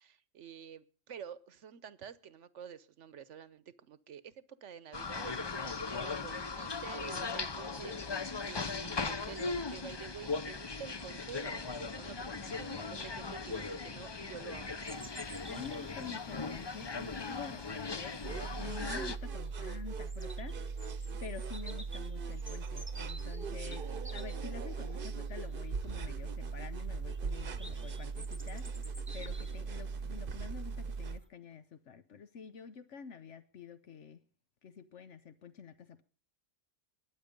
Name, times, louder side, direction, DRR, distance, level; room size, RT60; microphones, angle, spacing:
voice 1, 0.0-4.3 4.6-15.0 21.1-21.4 27.3-27.6, right 8 dB, 75° right, 1.2 m, -49 dB
sound 1, 4.9-19.2, left 4 dB, 30° left, 0.5 m, -39 dB
voice 2, 12.4-12.7 15.2-18.2 18.6-20.6 21.2-23.8 24.1-34.2 34.6-36.0, left 6 dB, 75° left, 1.2 m, -48 dB
Bird vocalization bird call bird song, 14.8-31.3, right 1 dB, 10° right, 1.2 m, -55 dB
sound 2, 18.2-31.2, right 5 dB, 50° right, 1.0 m, -39 dB
21.5 x 8.8 x 5.3 m
omnidirectional pair, 1.3 m